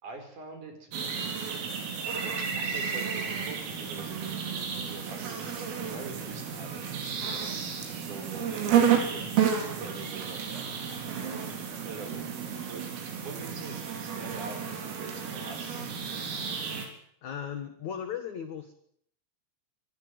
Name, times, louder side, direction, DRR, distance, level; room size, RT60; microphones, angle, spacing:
voice 1, 0.0-1.3 2.1-6.9 7.2-7.5 8.0-9.3 9.7-10.7 11.2-11.4 11.8-12.8 13.2-16.2, right 3 dB, 40° right, 6 dB, 5.8 m, -45 dB
sound 1, 0.9-16.9, right 7 dB, 90° right, 6.7 m, -31 dB
voice 2, 17.2-18.7, left 8 dB, 65° left, 9 dB, 1.8 m, -36 dB
24.5 x 17.5 x 7.8 m, 0.67 s
omnidirectional pair, 5.7 m